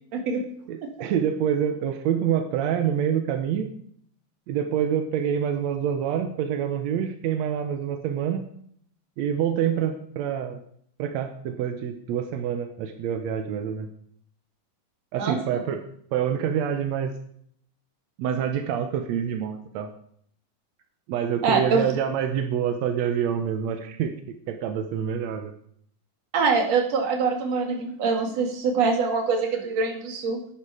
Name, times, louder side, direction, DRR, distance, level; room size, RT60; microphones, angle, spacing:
voice 1, 0.1-0.5 0.8-0.9 15.2-15.6 21.4-21.8 26.3-30.5, right 4 dB, 50° right, 4 dB, 3.0 m, -24 dB
voice 2, 0.7-3.7 4.5-8.5 9.2-10.6 11.0-13.9 15.1-15.8 16.1-17.1 18.2-19.9 21.1-24.1 24.5-25.5, right 8 dB, 70° right, 7 dB, 1.7 m, -26 dB
11.0 x 10.5 x 4.9 m, 0.64 s
omnidirectional pair, 4.1 m